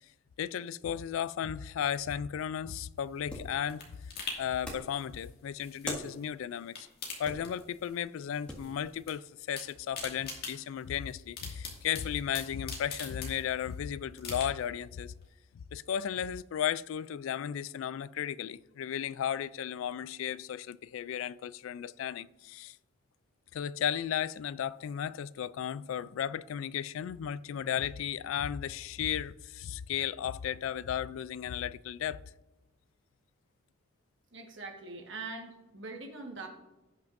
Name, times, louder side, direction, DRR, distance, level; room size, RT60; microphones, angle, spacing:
voice 1, 0.4-4.0 4.4-6.9 7.2-15.1 15.7-22.8 23.5-32.2, left 9 dB, 75° left, 0.3 m, -35 dB
sound 1, 3.0-6.3 6.6-8.1 8.3-9.1 9.4-13.7 14.2-14.8 15.2-15.3, left 4 dB, 50° left, 2.1 m, -44 dB
sound 2, 3.3-3.6 4.6-5.0 5.8-6.2 7.2-7.7 8.4-8.7 9.6-10.5, equal, 5° left, 1.8 m, -41 dB
voice 2, 34.3-36.5, right 3 dB, 60° right, 1.4 m, -42 dB
17.5 x 5.9 x 2.6 m
head